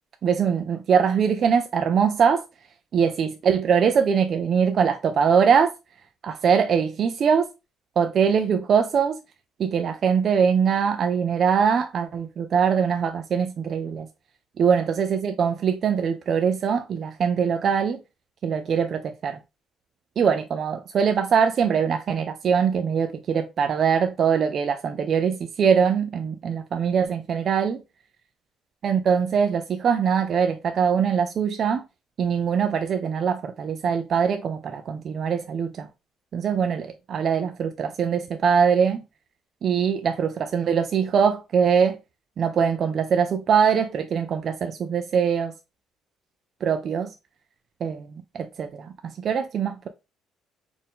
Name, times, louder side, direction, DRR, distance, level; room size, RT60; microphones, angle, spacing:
voice 1, 0.2-2.4 2.9-5.7 6.2-7.5 8.0-9.2 9.6-14.1 14.6-18.0 18.4-19.4 20.2-27.8 28.8-31.8 32.2-35.9 36.3-39.0 39.6-42.0 42.4-45.5 46.6-47.1 47.8-48.1 48.3-49.9, right 7 dB, 40° right, 0.4 m, -22 dB
4.4 x 2.6 x 3.5 m
cardioid pair, 160°, 0 cm